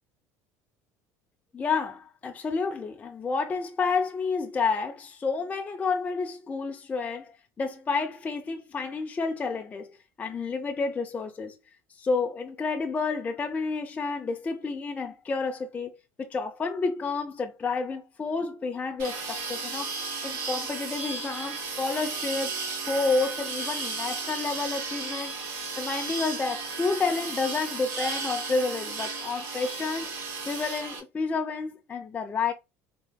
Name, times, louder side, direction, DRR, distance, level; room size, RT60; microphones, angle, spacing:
voice 1, 1.5-9.9 10.2-11.6 12.0-15.9 16.2-19.9 20.2-25.3 25.8-30.1 30.5-32.5, left 4 dB, 20° left, 0.5 m, -30 dB
sound 1, 19.0-31.0, right 4 dB, 80° right, 2.0 m, -34 dB
3.8 x 3.2 x 2.2 m
supercardioid pair, 115°, 7 cm